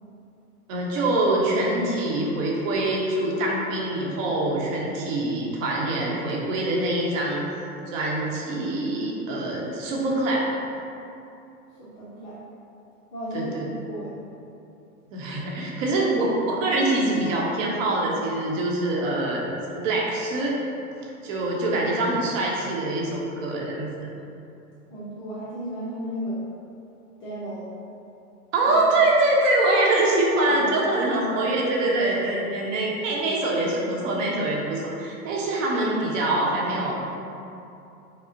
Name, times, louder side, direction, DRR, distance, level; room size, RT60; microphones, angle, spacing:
voice 1, 0.7-7.4 7.9-10.5 13.3-13.6 15.1-20.6 21.2-23.9 28.5-36.9, right 2 dB, 55° right, -3 dB, 0.8 m, -24 dB
voice 2, 11.8-12.4 13.1-14.2 24.9-26.4 27.2-27.7 28.6-28.7 30.5-30.9 32.6-32.7, equal, 20° left, -9 dB, 0.3 m, -34 dB
4.8 x 2.1 x 2.6 m, 2.7 s
hypercardioid pair, 110°, 46 cm